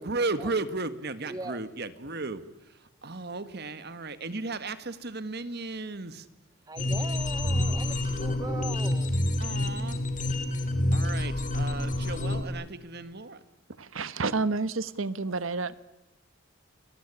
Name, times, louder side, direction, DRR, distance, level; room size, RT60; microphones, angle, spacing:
voice 1, 0.0-2.4 3.0-6.3 9.4-10.0 10.9-13.4, right 3 dB, 50° right, 12 dB, 1.7 m, -35 dB
voice 2, 1.3-1.6 6.7-9.1, right 2 dB, 20° right, 11 dB, 0.9 m, -40 dB
sound 1, 6.8-12.4, left 1 dB, 40° left, 3.0 m, -28 dB
voice 3, 13.8-15.7, right 3 dB, 70° right, 15 dB, 1.1 m, -30 dB
29.5 x 20.0 x 10.0 m, 0.97 s
head